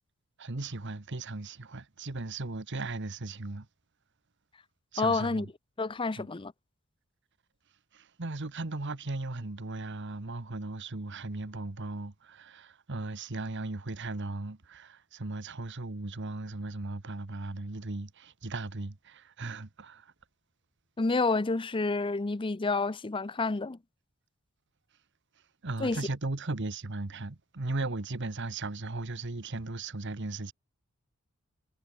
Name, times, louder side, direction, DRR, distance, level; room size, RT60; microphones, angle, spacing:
voice 1, 0.4-3.7 4.9-5.5 6.2-6.3 7.9-20.1 25.6-30.5, right 2 dB, 60° right, 1.3 m, -37 dB
voice 2, 5.0-5.5 5.8-6.5 21.0-23.8 25.8-26.0, left 3 dB, 25° left, 0.6 m, -29 dB
head